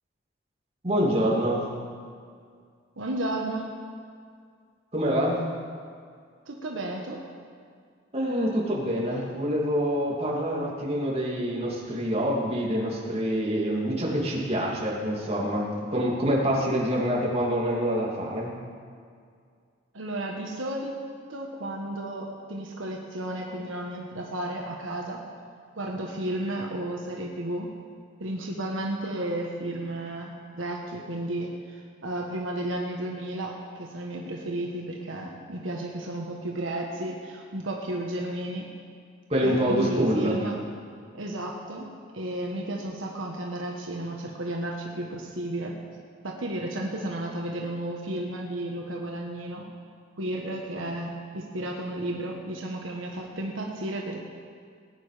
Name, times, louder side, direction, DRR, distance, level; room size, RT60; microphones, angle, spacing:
voice 1, 0.8-1.7 4.9-5.4 8.1-18.5 39.3-40.4, equal, 30° right, -4 dB, 2.8 m, -26 dB
voice 2, 3.0-3.7 6.4-7.2 19.9-20.9 21.3-25.2 25.8-27.7 28.2-38.7 39.4-40.6 41.1-45.8 46.2-49.7 50.2-54.2, right 1 dB, 85° right, -1 dB, 1.4 m, -33 dB
19.0 x 9.5 x 5.1 m, 2.1 s
head